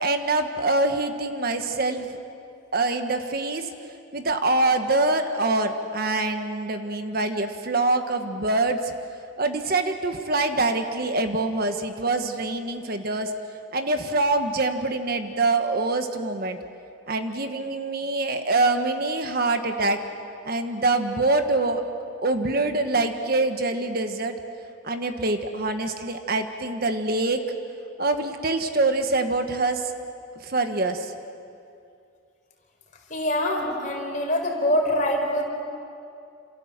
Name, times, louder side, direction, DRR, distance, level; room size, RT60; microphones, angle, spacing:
voice 1, 0.0-2.2 2.7-3.7 4.1-8.9 9.4-13.3 13.7-16.6 17.1-20.0 20.4-21.8 22.2-24.3 24.8-27.4 28.0-29.9 30.4-31.1, right 2 dB, 50° right, 6 dB, 1.5 m, -25 dB
voice 2, 33.1-35.4, left 1 dB, 40° left, 2 dB, 4.5 m, -24 dB
28.5 x 27.5 x 7.5 m, 2.6 s
head